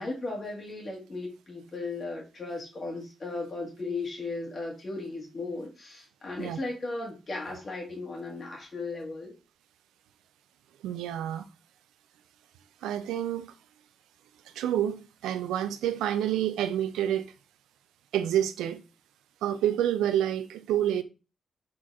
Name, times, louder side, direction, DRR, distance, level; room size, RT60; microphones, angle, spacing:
voice 1, 0.0-9.3, left 3 dB, 50° left, 1.7 m, -36 dB
voice 2, 10.8-11.4 12.8-13.5 14.6-17.3 18.1-18.8 19.4-21.0, right 11 dB, 90° right, 0.3 m, -28 dB
4.3 x 4.0 x 2.4 m
supercardioid pair, 50°, 0 cm